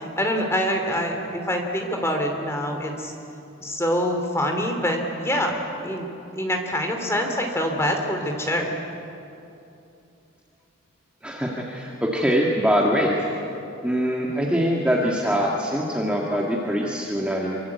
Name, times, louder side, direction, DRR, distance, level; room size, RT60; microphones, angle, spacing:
voice 1, 0.0-3.1 3.6-6.1 6.4-8.6, equal, 15° left, 3 dB, 2.9 m, -25 dB
voice 2, 11.2-13.2 13.8-17.6, equal, 5° right, -3 dB, 1.9 m, -23 dB
26.0 x 24.5 x 8.4 m, 2.8 s
head